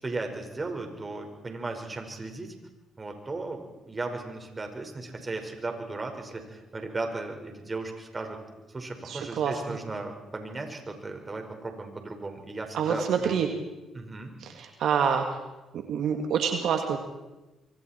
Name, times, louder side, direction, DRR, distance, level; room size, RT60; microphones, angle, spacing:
voice 1, 0.0-2.5 3.0-8.4 8.7-13.3 13.9-14.3, right 3 dB, 30° right, 4 dB, 5.1 m, -36 dB
voice 2, 9.0-9.8 12.7-13.5 14.4-15.3 15.7-17.0, right 7 dB, 70° right, 4 dB, 1.9 m, -27 dB
26.0 x 24.5 x 4.5 m, 1.1 s
supercardioid pair, 70°, 0 cm